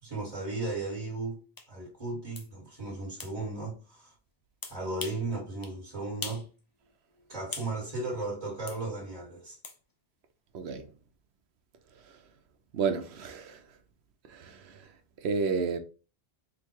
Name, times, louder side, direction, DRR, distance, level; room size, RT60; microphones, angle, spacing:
voice 1, 0.0-1.4 1.7-4.1 4.7-6.5 7.3-9.6, right 2 dB, 30° right, 1.5 m, -35 dB
sound 1, 1.6-1.7 2.3-2.5 3.2-3.3 4.6-5.2 5.6-5.8 6.2-6.5 6.8-7.7 8.7-8.8 9.6-9.8, left 3 dB, 35° left, 0.4 m, -41 dB
voice 2, 12.7-13.6 14.3-14.6 15.2-15.8, right 5 dB, 70° right, 0.9 m, -30 dB
3.8 x 2.2 x 4.5 m
omnidirectional pair, 1.2 m